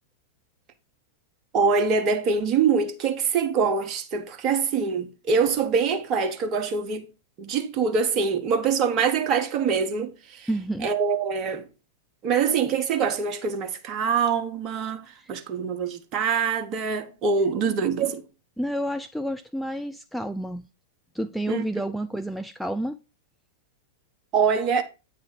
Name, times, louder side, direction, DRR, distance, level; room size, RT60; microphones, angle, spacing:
voice 1, 1.5-7.1 7.4-10.5 10.8-11.7 12.2-18.2 21.5-21.6 24.3-24.8, right 5 dB, 35° right, 1.1 m, -24 dB
voice 2, 10.5-10.9 15.2-15.3 18.6-20.6 21.1-23.0, right 1 dB, ahead, 0.3 m, -29 dB
9.1 x 3.3 x 5.2 m
figure-of-eight pair, 95°, 0 cm